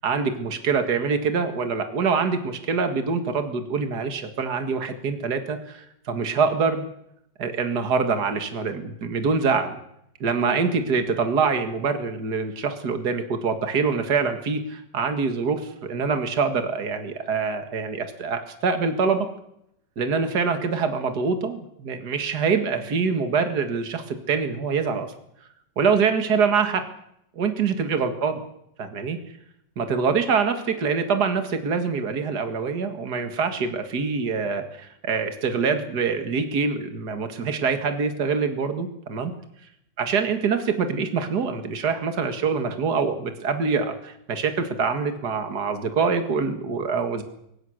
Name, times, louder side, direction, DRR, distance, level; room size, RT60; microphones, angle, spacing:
voice 1, 0.0-6.9 7.4-9.7 10.2-19.3 20.0-25.1 25.8-26.8 27.4-28.4 28.8-29.2 29.8-39.3 40.0-47.2, right 5 dB, 60° right, 7 dB, 2.4 m, -25 dB
23.0 x 20.5 x 6.6 m, 0.76 s
omnidirectional pair, 2.0 m